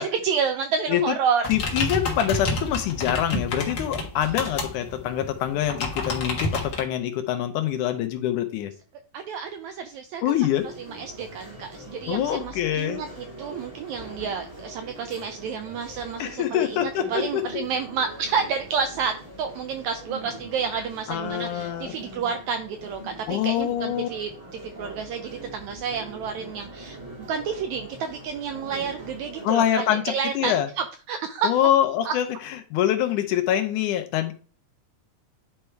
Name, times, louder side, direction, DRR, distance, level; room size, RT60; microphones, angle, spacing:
voice 1, 0.0-1.4 2.1-2.2 4.2-4.5 9.1-30.6 31.1-31.5 32.0-32.1, right 6 dB, 80° right, 7 dB, 1.6 m, -30 dB
sound 1, 1.4-6.8, left 2 dB, 45° left, 1.5 m, -29 dB
voice 2, 1.5-8.7 10.2-10.7 12.1-13.0 16.2-17.4 21.1-21.9 23.3-24.1 29.4-30.7 31.4-32.3 32.7-34.3, left 11 dB, 75° left, 8 dB, 2.0 m, -25 dB
sound 2, 10.5-29.5, right 1 dB, 10° right, 1.3 m, -42 dB
9.8 x 3.3 x 4.5 m, 0.38 s
omnidirectional pair, 3.9 m